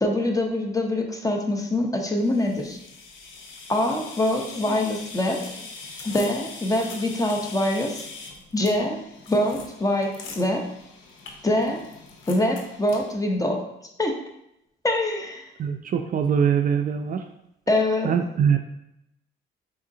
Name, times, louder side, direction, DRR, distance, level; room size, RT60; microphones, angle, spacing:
voice 1, 0.0-2.8 3.7-5.4 6.1-8.0 8.5-9.0 9.3-10.6 11.4-11.8 12.3-13.6 14.0-14.1 14.8-15.4 17.7-18.1, left 1 dB, 15° left, 2 dB, 0.8 m, -24 dB
sound 1, 2.2-13.1, left 3 dB, 80° left, 0.8 m, -41 dB
voice 2, 15.6-17.2 18.0-18.6, right 7 dB, 45° right, 6 dB, 0.4 m, -22 dB
4.9 x 3.6 x 2.7 m, 0.81 s
cardioid pair, 90°, 20 cm